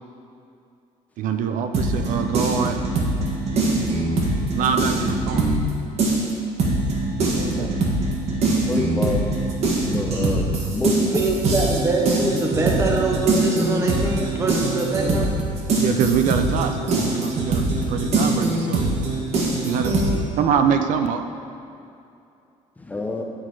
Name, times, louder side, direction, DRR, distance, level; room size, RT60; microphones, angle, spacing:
voice 1, 1.2-2.8 4.5-5.5 7.2-7.8 15.8-19.0 19.6-21.2, right 7 dB, 70° right, 7 dB, 0.5 m, -24 dB
sound 1, 1.7-5.7 6.0-20.2, right 2 dB, 50° right, 1.3 m, -22 dB
voice 2, 8.7-9.2 9.8-10.9 22.9-23.2, left 3 dB, 10° left, 2 dB, 0.7 m, -26 dB
voice 3, 11.0-15.3, right 3 dB, 20° right, 0 dB, 0.7 m, -24 dB
8.8 x 4.0 x 4.7 m, 2.6 s
cardioid pair, 130°, 14 cm